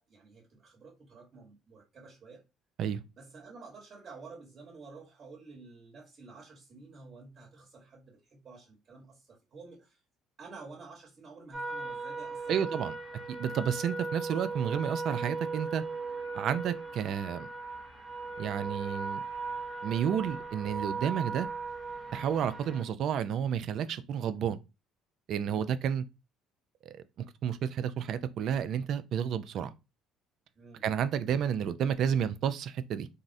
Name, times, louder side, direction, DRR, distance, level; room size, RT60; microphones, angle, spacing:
voice 1, 0.0-2.4 3.2-10.0 10.4-12.9 25.5-25.7 30.5-30.8, right 4 dB, 40° right, 1.1 m, -51 dB
sound 1, 11.5-22.8, right 4 dB, 25° right, 0.7 m, -38 dB
voice 2, 12.5-13.0 13.3-15.8 16.3-17.5 18.4-19.2 19.8-21.5 22.1-24.6 25.3-26.0 26.9-29.7 30.8-33.1, right 8 dB, 60° right, 0.3 m, -31 dB
3.7 x 2.0 x 2.6 m
supercardioid pair, 75°, 0 cm